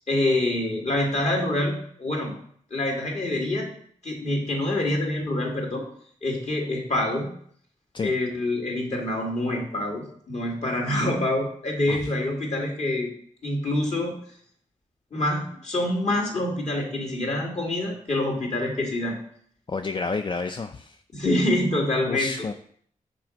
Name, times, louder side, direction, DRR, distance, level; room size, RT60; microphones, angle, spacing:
voice 1, 0.1-2.3 2.7-3.7 4.0-5.8 6.2-7.3 8.0-13.1 13.4-14.2 15.1-19.2 21.1-22.3, left 1 dB, 50° left, -1 dB, 2.2 m, -26 dB
voice 2, 19.7-21.0 22.1-22.5, left 4 dB, 35° left, 7 dB, 0.4 m, -30 dB
6.1 x 4.3 x 5.0 m, 0.62 s
cardioid pair, 60°, 14 cm